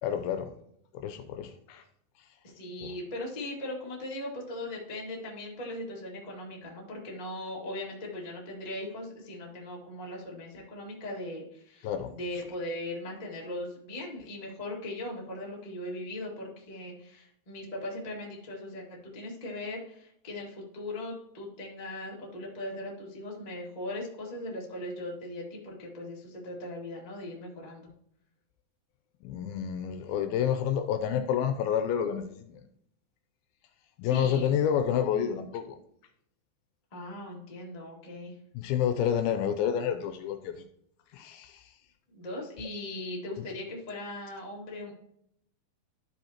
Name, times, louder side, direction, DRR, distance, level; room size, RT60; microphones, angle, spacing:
voice 1, 0.0-0.5 0.9-1.8 2.8-2.9 11.8-12.1 29.2-32.6 34.0-35.8 38.5-40.7 41.1-41.7 43.4-43.5, left 9 dB, 80° left, 8 dB, 2.3 m, -29 dB
voice 2, 2.4-27.9 34.0-34.5 36.9-38.4 42.1-44.9, left 1 dB, 35° left, -3 dB, 0.6 m, -39 dB
12.0 x 5.4 x 2.9 m, 0.72 s
omnidirectional pair, 4.6 m